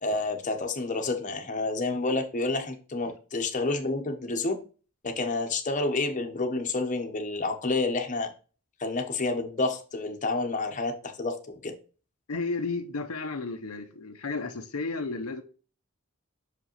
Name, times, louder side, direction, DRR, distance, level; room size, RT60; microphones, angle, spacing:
voice 1, 0.0-4.6 5.0-8.3 8.8-11.4 11.6-11.7, left 3 dB, 35° left, 1.0 m, -29 dB
voice 2, 12.3-15.4, left 3 dB, 90° left, 0.9 m, -33 dB
6.1 x 5.1 x 3.0 m
head